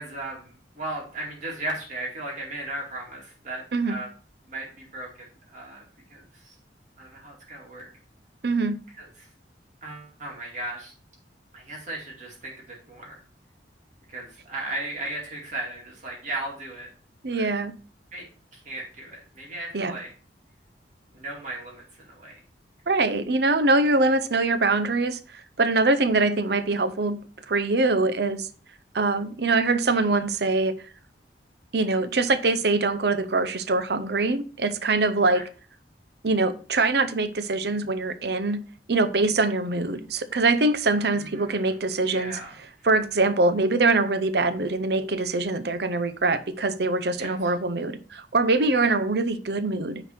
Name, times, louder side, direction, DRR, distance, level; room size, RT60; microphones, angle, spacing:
voice 1, 0.0-4.1 4.5-5.8 6.1-6.5 7.0-7.9 9.0-9.3 9.8-10.9 11.5-13.2 14.1-16.9 17.3-17.5 18.1-18.3 18.5-20.1 21.1-22.4 35.3-35.4 41.1-41.7 42.1-42.5 47.2-47.5, right 2 dB, 45° right, 2.3 m, -36 dB
voice 2, 8.4-8.8 17.2-17.7 19.7-20.0 22.9-27.2 27.5-28.5 28.9-30.7 31.7-35.4 36.2-38.6 38.9-42.4 42.8-50.0, right 3 dB, 65° right, 0.7 m, -23 dB
9.4 x 4.0 x 4.4 m
head